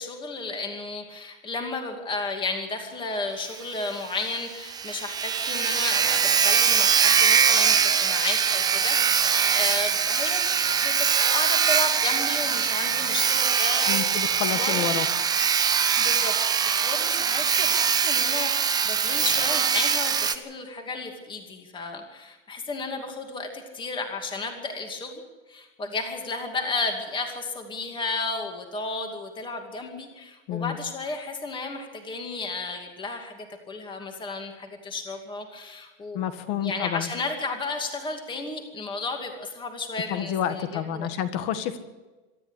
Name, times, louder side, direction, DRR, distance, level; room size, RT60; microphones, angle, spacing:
voice 1, 0.0-10.5 10.8-14.2 14.5-15.0 16.0-16.4 16.6-25.2 25.5-36.2 36.5-41.1, left 3 dB, 15° left, 4 dB, 2.5 m, -33 dB
Sawing, 3.5-3.6 3.9-4.0 4.4-4.5 4.6-20.4, right 7 dB, 10° right, 0.6 m, -22 dB
voice 2, 13.9-15.1 30.5-30.8 36.1-37.1 40.1-41.8, left 10 dB, 40° left, 10 dB, 1.8 m, -29 dB
24.0 x 13.0 x 8.3 m, 1.2 s
supercardioid pair, 160°, 35 cm